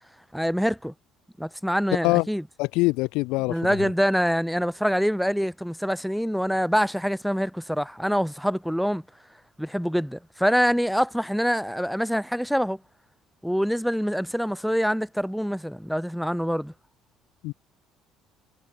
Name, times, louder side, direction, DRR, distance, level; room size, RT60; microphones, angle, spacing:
voice 1, 0.3-0.9 1.4-2.4 3.5-9.0 9.6-12.8 13.4-16.7, equal, ahead, 0.7 m, -25 dB
voice 2, 2.6-3.9 17.4-17.5, left 23 dB, 80° left, 0.8 m, -24 dB
supercardioid pair, 80°, 0 cm